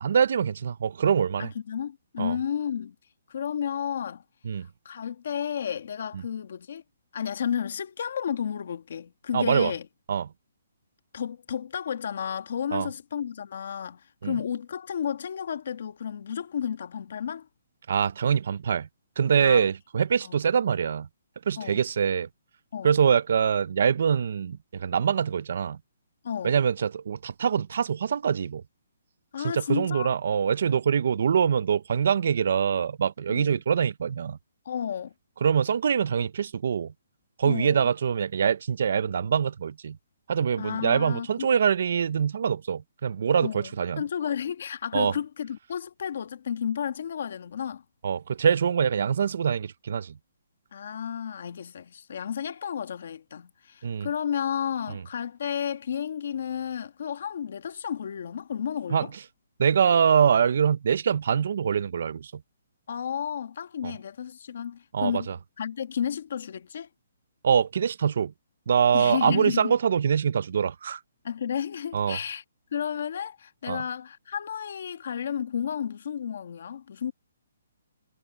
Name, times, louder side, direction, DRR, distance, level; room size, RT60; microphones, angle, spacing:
voice 1, 0.0-1.5 2.2-2.4 4.4-4.7 6.1-6.2 9.3-9.7 10.1-10.3 12.7-12.9 14.2-14.4 17.9-18.9 19.2-21.1 21.5-22.3 22.8-25.8 26.4-28.6 29.4-34.4 35.4-36.9 37.4-40.0 40.3-44.0 44.9-45.1 48.0-50.2 53.8-54.1 54.9-55.0 58.9-59.1 59.6-62.4 63.8-63.9 64.9-65.4 67.4-68.3 68.7-71.0 71.9-72.2 73.7-73.8, right 7 dB, 50° right, 0.5 m, -24 dB
voice 2, 1.4-2.9 3.3-4.2 4.8-6.8 7.1-9.9 11.1-17.5 19.4-19.7 20.2-20.4 21.6-21.8 22.7-22.9 26.2-26.6 29.3-30.1 33.3-33.5 34.6-35.1 37.4-37.8 40.6-41.5 43.4-47.8 50.7-59.1 62.9-65.3 65.6-66.9 68.9-69.7 71.2-72.4 72.7-77.1, left 8 dB, 50° left, 1.5 m, -32 dB
hypercardioid pair, 175°, 0 cm